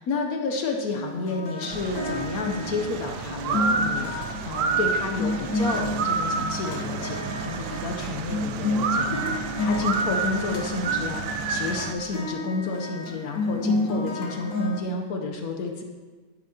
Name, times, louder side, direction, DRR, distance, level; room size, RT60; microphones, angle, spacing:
voice 1, 0.0-15.8, left 3 dB, 65° left, 3 dB, 1.2 m, -31 dB
sound 1, 0.9-14.8, left 2 dB, 85° left, 1.7 m, -31 dB
sound 2, 1.7-11.9, right 6 dB, 90° right, 1.2 m, -35 dB
sound 3, 3.4-6.8 8.8-11.9, right 4 dB, 60° right, 0.9 m, -27 dB
10.5 x 7.9 x 2.8 m, 1.4 s
omnidirectional pair, 1.7 m